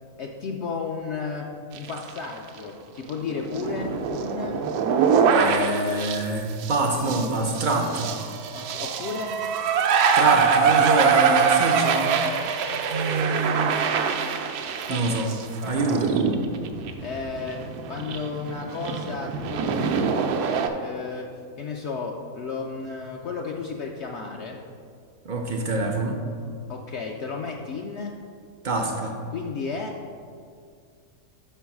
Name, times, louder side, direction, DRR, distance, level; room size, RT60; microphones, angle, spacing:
voice 1, 0.2-4.6 8.5-9.4 14.9-15.2 15.6-16.0 17.0-20.4 20.8-24.7 26.7-28.2 29.3-30.0, left 4 dB, 65° left, 1 dB, 0.7 m, -33 dB
sound 1, 1.8-2.2 2.5-2.6 3.1-20.7, right 6 dB, 85° right, 1.1 m, -24 dB
voice 2, 5.3-8.1 10.1-12.3 12.9-13.7 14.9-15.3 15.6-16.2 25.2-26.2 28.6-29.1, right 2 dB, 60° right, 1 dB, 0.5 m, -25 dB
6.1 x 4.6 x 5.9 m, 2.2 s
omnidirectional pair, 1.6 m